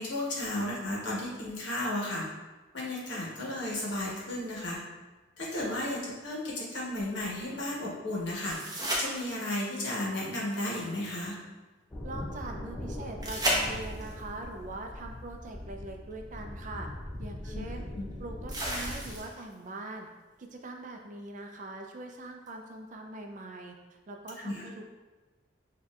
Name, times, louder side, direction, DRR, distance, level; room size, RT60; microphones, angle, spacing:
voice 1, 0.0-2.2 2.7-4.8 5.4-8.6 9.0-11.4 17.4-17.6 17.9-18.1 24.4-24.6, left 1 dB, 65° left, -5 dB, 1.2 m, -34 dB
sound 1, 8.4-9.7 13.2-14.2 16.1-16.2 18.5-19.5 22.5-22.6, equal, 20° right, 0.8 m, -32 dB
sound 2, 11.9-19.2, left 1 dB, 15° left, 0.5 m, -41 dB
voice 2, 12.0-16.9 17.2-17.9 18.2-20.1 20.4-24.9, right 2 dB, 40° right, 3 dB, 0.4 m, -42 dB
6.5 x 2.7 x 2.4 m, 1.2 s
head